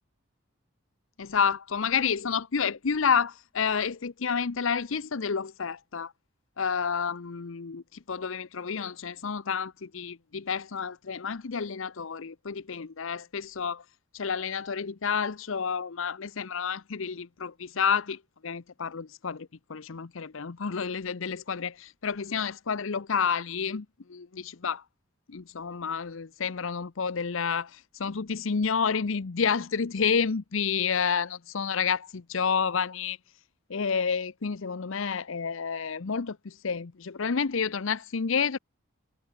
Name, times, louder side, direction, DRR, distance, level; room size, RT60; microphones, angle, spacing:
voice 1, 1.2-6.1 6.6-7.8 8.1-13.8 14.1-24.8 25.3-33.2 33.7-38.6, left 6 dB, 70° left, 0.7 m, -30 dB
head